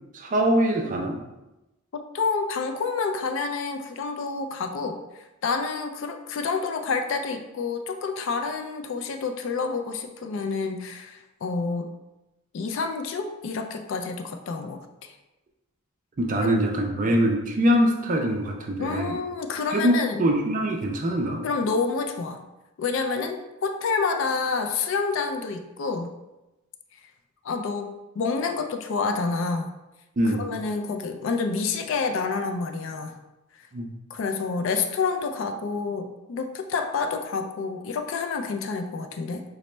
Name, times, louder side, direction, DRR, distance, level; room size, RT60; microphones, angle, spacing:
voice 1, 0.1-1.2 16.2-19.2 19.7-21.4 30.2-30.5 33.7-33.9, equal, 35° right, 2 dB, 0.4 m, -23 dB
voice 2, 1.9-11.9 12.5-15.1 16.4-16.6 18.8-20.3 21.4-22.4 22.8-26.1 27.4-29.7 30.2-33.2 34.1-39.4, left 4 dB, 60° left, 6 dB, 0.3 m, -28 dB
4.0 x 2.0 x 3.2 m, 0.99 s
head